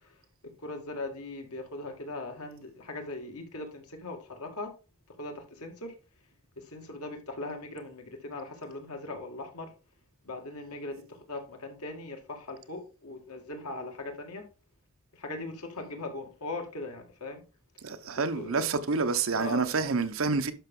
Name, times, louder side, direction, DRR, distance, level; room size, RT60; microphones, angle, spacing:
voice 1, 0.6-4.7 5.2-5.9 6.7-9.7 10.2-11.0 11.3-14.4 15.1-17.4 18.0-18.7 19.3-19.6, left 2 dB, 85° left, 2.1 m, -39 dB
voice 2, 17.8-20.5, right 4 dB, 65° right, 0.9 m, -28 dB
11.5 x 5.9 x 3.7 m
head